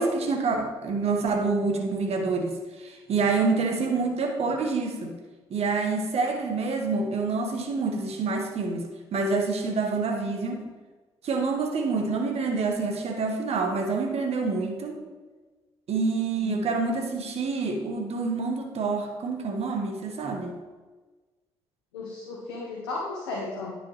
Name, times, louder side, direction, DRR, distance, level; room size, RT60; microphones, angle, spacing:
voice 1, 0.0-2.5 2.8-5.1 5.5-10.6 11.2-15.0 15.9-20.6, right 4 dB, 50° right, 3 dB, 1.3 m, -27 dB
voice 2, 21.9-23.8, left 3 dB, 80° left, -3 dB, 1.1 m, -34 dB
9.7 x 5.5 x 3.2 m, 1.3 s
hypercardioid pair, 45°, 13 cm